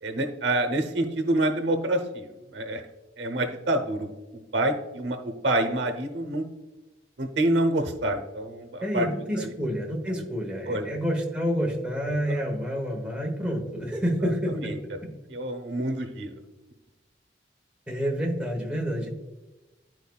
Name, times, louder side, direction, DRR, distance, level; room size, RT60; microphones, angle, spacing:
voice 1, 0.0-2.8 3.2-4.1 4.5-6.5 7.2-9.1 9.4-9.5 10.1-10.2 10.7-11.0 12.1-12.2 14.5-14.8 15.3-16.3, right 1 dB, 80° right, 6 dB, 0.9 m, -27 dB
voice 2, 8.8-14.7 15.0-15.1 17.9-19.1, equal, 5° right, -1 dB, 1.1 m, -28 dB
11.5 x 4.6 x 2.3 m, 1.1 s
head